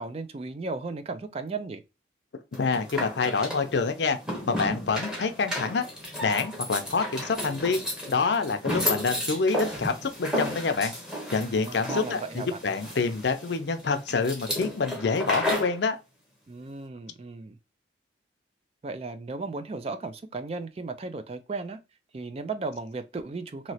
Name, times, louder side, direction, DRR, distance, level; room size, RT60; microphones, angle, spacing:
voice 1, 0.0-1.8 11.4-12.7 16.5-17.6 18.8-21.8 22.1-23.7, right 3 dB, 30° right, 0.3 m, -35 dB
sound 1, 2.5-15.8, left 1 dB, 5° right, 0.9 m, -33 dB
voice 2, 2.6-4.2 4.5-5.9 6.2-7.8 8.1-10.9 11.3-16.0, left 4 dB, 60° left, 0.5 m, -27 dB
3.0 x 2.7 x 2.7 m
head